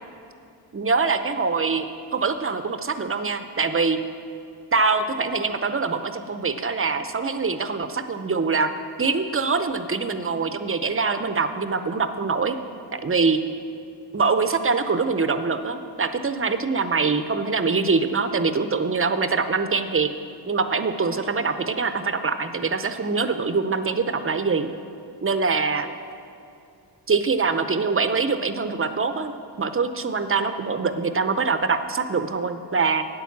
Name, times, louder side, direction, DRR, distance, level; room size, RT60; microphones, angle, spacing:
voice 1, 0.7-4.0 4.7-8.7 9.0-12.6 12.9-13.4 14.1-20.1 20.5-24.7 25.2-25.9 27.1-29.3 29.6-33.0, right 4 dB, 30° right, 10 dB, 0.7 m, -24 dB
8.9 x 8.6 x 7.3 m, 2.6 s
cardioid pair, 70°, 45 cm